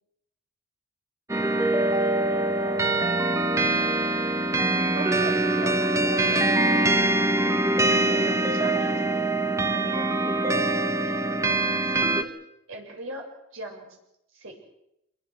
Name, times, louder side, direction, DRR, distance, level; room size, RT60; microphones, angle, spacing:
sound 1, 1.3-12.2, right 2 dB, 15° right, 1.2 m, -23 dB
voice 1, 2.3-4.1 4.9-6.9 7.9-9.3 9.6-10.6 11.1-12.3 12.7-13.3 13.5-13.9 14.3-14.6, right 2 dB, 70° right, 1 dB, 6.9 m, -39 dB
27.0 x 22.0 x 6.5 m, 0.83 s
head